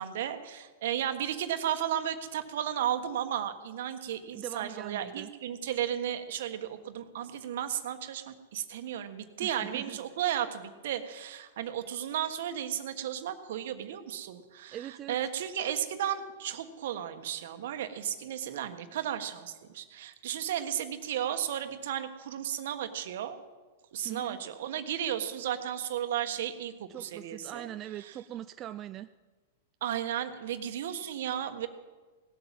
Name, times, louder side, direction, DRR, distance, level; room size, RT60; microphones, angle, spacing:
voice 1, 0.0-23.4 23.9-27.7 28.0-28.1 29.8-31.7, right 10 dB, 70° right, 9 dB, 1.3 m, -34 dB
voice 2, 4.3-5.3 9.4-10.0 14.7-15.2 24.0-24.4 26.9-29.1, right 12 dB, 30° right, 10 dB, 0.4 m, -41 dB
18.0 x 8.3 x 7.5 m, 1.3 s
hypercardioid pair, 130°, 0 cm